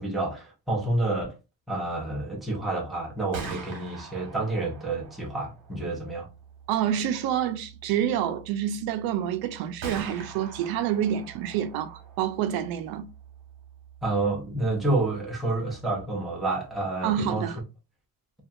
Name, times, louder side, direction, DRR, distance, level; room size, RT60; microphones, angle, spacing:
voice 1, 0.0-1.4 1.7-6.3 14.0-17.5, right 2 dB, ahead, 0.5 m, -29 dB
Gunshot gunfire, 3.1-16.9, right 5 dB, 60° right, 1.0 m, -45 dB
voice 2, 6.7-13.1 17.0-17.6, right 10 dB, 75° right, 0.5 m, -28 dB
2.8 x 2.3 x 2.4 m
cardioid pair, 180°, 37 cm